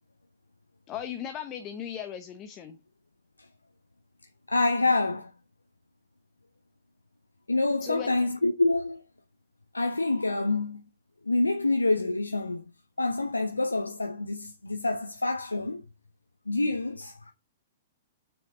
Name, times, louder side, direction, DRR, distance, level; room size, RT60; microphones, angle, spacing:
voice 1, 0.9-2.8 7.8-8.1, left 9 dB, 30° left, 1.0 m, -37 dB
voice 2, 4.5-5.3 7.5-9.0 9.7-10.8 11.2-12.6 13.0-15.8 16.5-17.3, left 2 dB, 85° left, 0.7 m, -27 dB
7.2 x 6.2 x 4.0 m
figure-of-eight pair, 110°, 0 cm